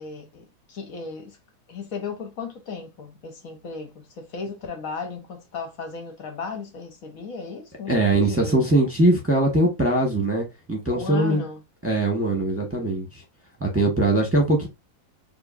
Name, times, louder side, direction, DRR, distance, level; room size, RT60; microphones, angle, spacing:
voice 1, 0.0-1.4 1.7-8.6 10.9-11.6, left 5 dB, 65° left, 1.3 m, -35 dB
voice 2, 7.9-11.4 11.8-13.2 13.6-14.7, right 2 dB, 10° right, 1.0 m, -21 dB
4.9 x 2.9 x 2.5 m
omnidirectional pair, 1.7 m